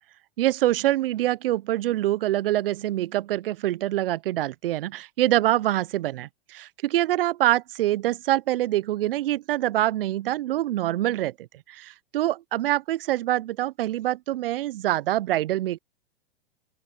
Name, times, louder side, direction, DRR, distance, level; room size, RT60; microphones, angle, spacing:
voice 1, 0.4-11.3 11.7-15.8, right 14 dB, 65° right, 0.8 m, -25 dB
open air
hypercardioid pair, 105°, 30 cm